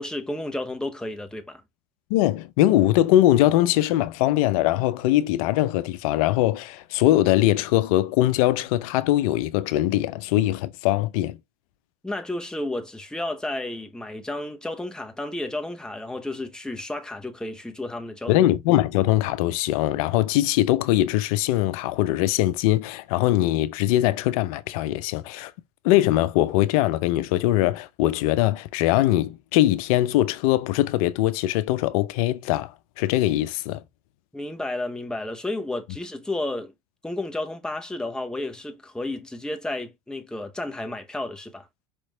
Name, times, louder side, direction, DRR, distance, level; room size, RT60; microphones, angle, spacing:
voice 1, 0.0-1.6 12.0-18.4 34.3-36.7 37.0-41.7, left 2 dB, 5° left, 0.9 m, -32 dB
voice 2, 2.1-11.4 18.3-25.5 25.8-32.7 33.0-33.8, left 14 dB, 75° left, 0.6 m, -21 dB
5.1 x 3.1 x 3.2 m
hypercardioid pair, 90°, 19 cm